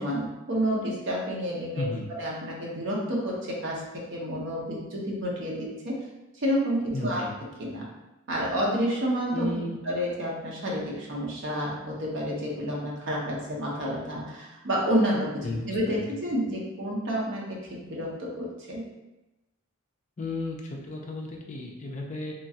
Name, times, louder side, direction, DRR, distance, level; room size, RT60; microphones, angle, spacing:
voice 1, 0.0-1.9 2.2-6.0 6.4-7.3 7.6-7.9 8.3-18.9, equal, 60° right, -3 dB, 0.7 m, -29 dB
voice 2, 1.7-2.0 6.9-7.3 9.3-9.8 15.4-16.1 20.2-22.3, left 2 dB, 35° left, -1 dB, 0.4 m, -34 dB
2.9 x 2.3 x 2.7 m, 1.0 s
head